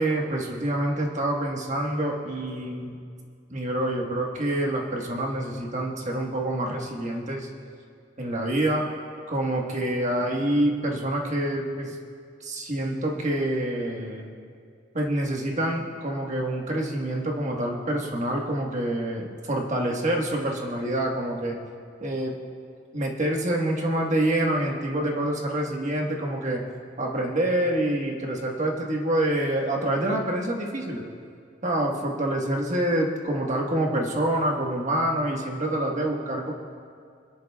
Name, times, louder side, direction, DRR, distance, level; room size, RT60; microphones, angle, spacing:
voice 1, 0.0-3.0 3.5-7.5 8.2-8.9 9.3-11.9 12.4-14.3 14.9-21.6 22.0-22.4 22.9-26.6 27.0-31.0 31.6-36.5, right 1 dB, 40° right, 0 dB, 1.5 m, -26 dB
27.0 x 10.5 x 2.4 m, 2.3 s
head